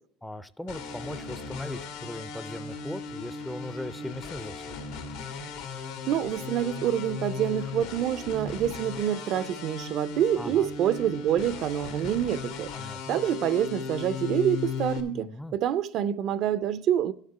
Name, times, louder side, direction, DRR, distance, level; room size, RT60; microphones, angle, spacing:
voice 1, 0.2-4.6 10.4-10.7 12.7-13.2 15.1-15.6, left 1 dB, 5° left, 0.4 m, -39 dB
sound 1, 0.7-15.0, left 5 dB, 80° left, 1.5 m, -37 dB
voice 2, 6.1-12.7 13.1-17.1, right 10 dB, 55° right, 0.4 m, -27 dB
11.0 x 6.6 x 4.6 m
supercardioid pair, 105°, 0 cm